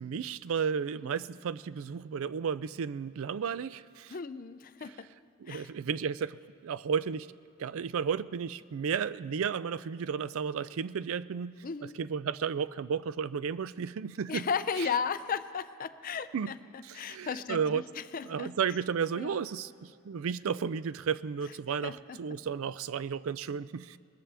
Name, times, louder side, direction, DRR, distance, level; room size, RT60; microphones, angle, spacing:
voice 1, 0.0-4.1 5.4-7.3 7.6-14.5 14.8-14.9 16.3-16.5 16.8-17.8 18.2-24.0, right 6 dB, 65° right, 17 dB, 0.4 m, -33 dB
voice 2, 4.1-5.1 5.5-5.7 11.6-12.0 14.3-18.5 19.2-19.4 21.8-22.2, left 6 dB, 40° left, 13 dB, 0.4 m, -35 dB
20.5 x 20.5 x 3.4 m, 2.3 s
head